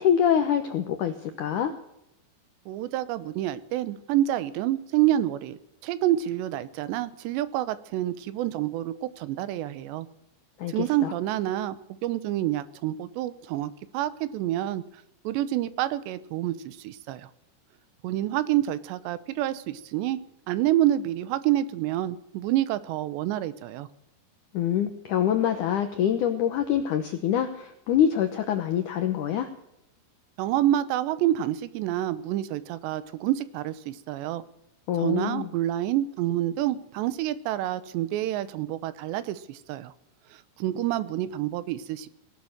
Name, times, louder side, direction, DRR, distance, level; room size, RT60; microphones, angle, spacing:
voice 1, 0.0-1.7 10.6-11.1 24.5-29.5 34.9-35.5, left 9 dB, 80° left, 7 dB, 1.8 m, -25 dB
voice 2, 2.7-10.1 10.7-14.8 15.2-17.3 18.0-20.2 20.5-23.9 30.4-34.4 35.0-39.9 40.3-42.1, right 13 dB, 85° right, 15 dB, 3.0 m, -28 dB
19.0 x 11.5 x 6.5 m, 0.81 s
omnidirectional pair, 5.0 m